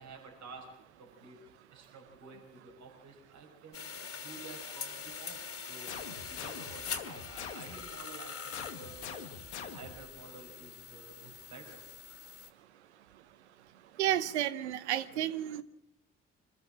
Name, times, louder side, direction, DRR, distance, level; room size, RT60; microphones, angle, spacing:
voice 1, 0.0-1.4 1.7-6.0 6.3-9.2 9.6-11.9, right 4 dB, 55° right, 5.0 m, -51 dB
sound 1, 3.7-12.5, left 6 dB, 45° left, 3.0 m, -44 dB
sound 2, 5.9-7.9 8.5-10.1, left 6 dB, 90° left, 1.7 m, -44 dB
voice 2, 14.0-15.6, right 12 dB, 85° right, 0.9 m, -31 dB
25.0 x 14.5 x 7.7 m
hypercardioid pair, 45°, 33 cm